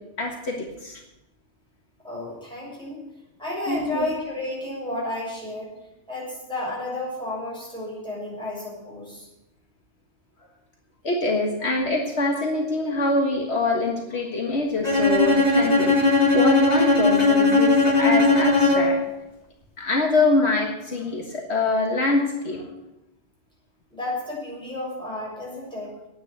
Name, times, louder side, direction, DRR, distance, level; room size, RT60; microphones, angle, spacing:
voice 1, 0.2-1.0 3.7-4.1 11.0-19.0 19.8-22.7, left 2 dB, 70° left, 1 dB, 1.8 m, -24 dB
voice 2, 2.0-3.0 3.4-5.7 6.1-9.3 23.9-25.9, left 1 dB, 5° left, -6 dB, 6.9 m, -32 dB
Bowed string instrument, 14.8-19.1, left 3 dB, 35° left, 2.1 m, -18 dB
10.0 x 9.3 x 9.4 m, 0.94 s
omnidirectional pair, 1.2 m